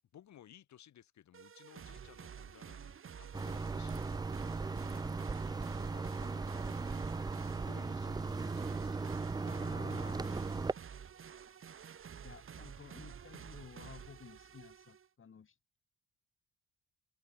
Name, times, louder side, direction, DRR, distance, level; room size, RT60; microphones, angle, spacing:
voice 1, 0.1-9.4 10.2-11.1, left 11 dB, 65° left, 2.8 m, -60 dB
sound 1, 1.3-15.1, right 7 dB, 45° right, 1.7 m, -50 dB
sound 2, 3.3-10.7, right 4 dB, 15° right, 0.4 m, -37 dB
voice 2, 9.4-10.7 12.2-15.8, left 6 dB, 45° left, 5.6 m, -53 dB
cardioid pair, 90°, 30 cm